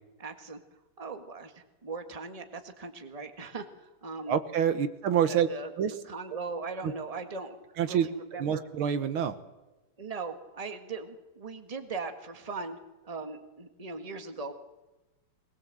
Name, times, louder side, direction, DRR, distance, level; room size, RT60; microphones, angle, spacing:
voice 1, 0.2-4.4 5.3-7.6 7.8-8.6 10.0-12.8 13.0-14.5, right 4 dB, 20° right, 6 dB, 1.6 m, -39 dB
voice 2, 4.3-5.5 5.8-5.9 7.8-8.1 8.4-9.4, right 8 dB, 75° right, 11 dB, 1.9 m, -26 dB
22.5 x 20.0 x 7.8 m, 1.1 s
omnidirectional pair, 2.4 m